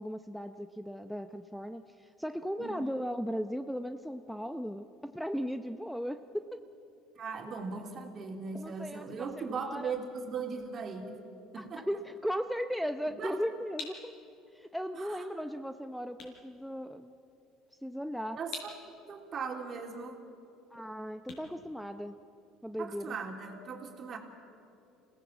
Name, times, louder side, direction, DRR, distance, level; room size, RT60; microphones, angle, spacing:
voice 1, 0.0-6.5 8.5-9.9 11.6-14.1 14.5-17.2 17.8-18.4 20.7-22.2 22.6-23.2, equal, ahead, 8 dB, 0.7 m, -37 dB
voice 2, 2.6-2.9 7.2-11.2 11.5-11.8 13.1-13.3 14.9-15.2 18.3-18.7 19.1-20.2 22.8-24.2, right 5 dB, 45° right, 3 dB, 3.1 m, -39 dB
sound 1, 13.7-22.5, left 4 dB, 60° left, 5.5 m, -50 dB
26.0 x 17.5 x 7.3 m, 2.7 s
supercardioid pair, 95°, 0 cm